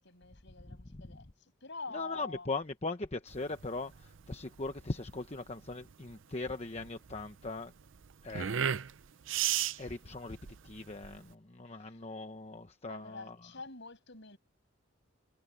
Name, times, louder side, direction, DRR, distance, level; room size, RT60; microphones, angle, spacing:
voice 1, 0.0-1.3 1.6-2.5 11.8-12.0 12.9-14.4, left 3 dB, 55° left, 7.0 m, -46 dB
voice 2, 1.9-7.7 8.2-8.5 9.7-10.4 10.6-13.4, left 3 dB, 30° left, 1.0 m, -39 dB
sound 1, 3.3-11.3, right 9 dB, 60° right, 0.6 m, -36 dB
head